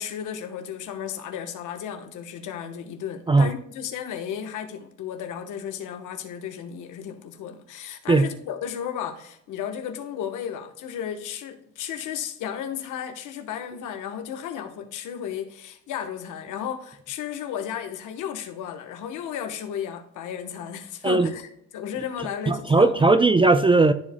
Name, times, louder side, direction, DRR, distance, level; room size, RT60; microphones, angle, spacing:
voice 1, 0.0-23.0, left 9 dB, 90° left, 1.1 m, -34 dB
voice 2, 22.5-23.9, right 3 dB, 15° right, 0.5 m, -18 dB
14.0 x 4.8 x 2.2 m
cardioid pair, 90°, 30 cm